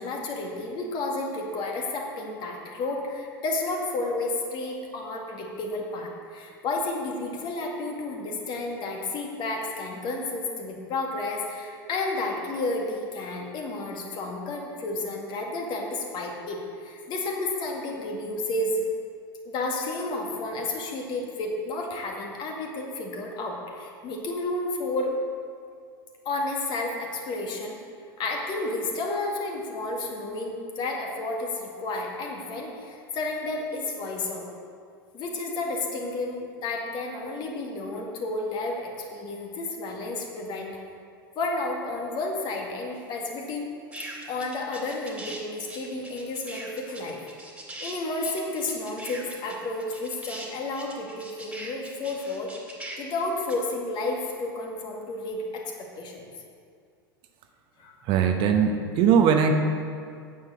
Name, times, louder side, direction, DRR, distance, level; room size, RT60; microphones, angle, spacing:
voice 1, 0.0-18.9 19.5-25.2 26.3-27.8 28.2-34.5 35.1-40.7 41.4-43.7 44.2-47.2 47.8-52.5 53.0-56.3 57.8-57.9, left 2 dB, 40° left, 0 dB, 2.0 m, -31 dB
sound 1, 43.9-45.4 45.6-53.5, right 1 dB, 10° right, 2.4 m, -41 dB
voice 2, 58.0-59.5, right 7 dB, 40° right, 5 dB, 1.0 m, -20 dB
9.3 x 7.3 x 6.7 m, 2.3 s
figure-of-eight pair, 85°, 12 cm